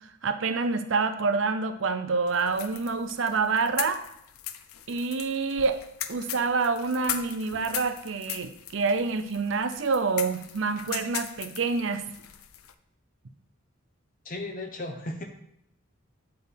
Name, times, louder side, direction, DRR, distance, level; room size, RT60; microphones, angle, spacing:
voice 1, 0.2-4.0 4.9-5.8 6.1-12.0, right 4 dB, 60° right, 9 dB, 0.6 m, -27 dB
sound 1, 2.3-12.7, left 10 dB, 80° left, 0.5 m, -39 dB
voice 2, 14.2-15.2, left 2 dB, 40° left, 3 dB, 1.0 m, -35 dB
7.9 x 4.6 x 5.1 m, 0.77 s
head